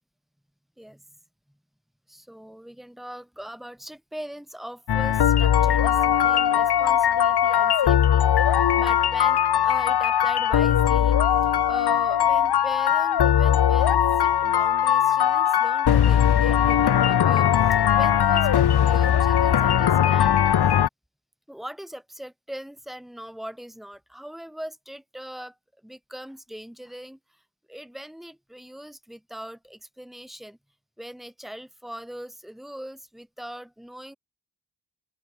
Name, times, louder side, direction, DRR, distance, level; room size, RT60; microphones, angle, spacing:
voice 1, 2.1-20.5 21.5-25.6 25.8-27.4 27.7-30.6 31.0-34.2, equal, ahead, 2.3 m, -40 dB
sound 1, 4.9-20.9, left 9 dB, 55° left, 0.8 m, -20 dB
open air
wide cardioid pair, 165°, 48 cm